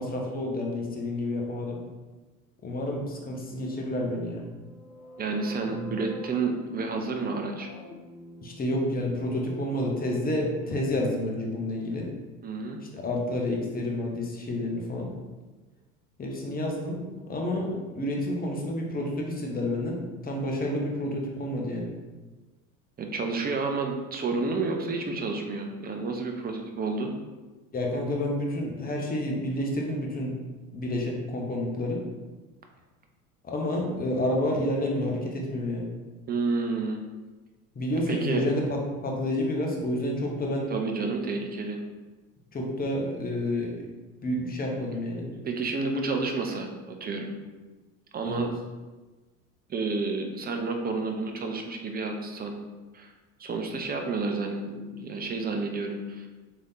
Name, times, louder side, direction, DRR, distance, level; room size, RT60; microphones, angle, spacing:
voice 1, 0.0-1.8 2.6-4.5 5.7-5.9 8.4-12.1 12.9-15.1 16.2-17.0 17.3-21.9 27.7-30.3 30.7-32.0 33.4-35.9 37.7-40.7 42.5-43.7 44.2-45.3 48.2-48.5, left 1 dB, 20° left, 0 dB, 1.1 m, -29 dB
sound 1, 4.4-12.2, left 2 dB, 70° left, 0.9 m, -46 dB
voice 2, 5.2-7.7 12.4-12.8 23.0-27.1 36.3-37.0 38.1-38.4 40.7-41.8 45.3-47.3 48.1-48.5 49.7-52.6 52.9-53.1 53.4-56.3, right 3 dB, 20° right, 3 dB, 0.7 m, -30 dB
3.6 x 3.3 x 4.1 m, 1.2 s
hypercardioid pair, 75°, 44 cm